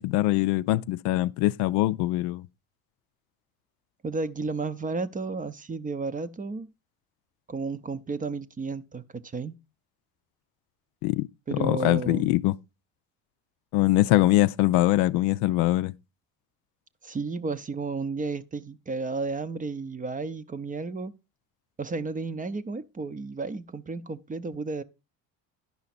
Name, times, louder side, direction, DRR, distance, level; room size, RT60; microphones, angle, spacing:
voice 1, 0.0-2.4 11.0-12.5 13.7-15.9, left 17 dB, 70° left, 0.5 m, -23 dB
voice 2, 4.0-6.7 7.5-9.6 11.5-12.3 17.0-21.1 21.8-24.8, right 4 dB, 20° right, 0.6 m, -32 dB
10.5 x 5.6 x 4.1 m
hypercardioid pair, 75°, 41 cm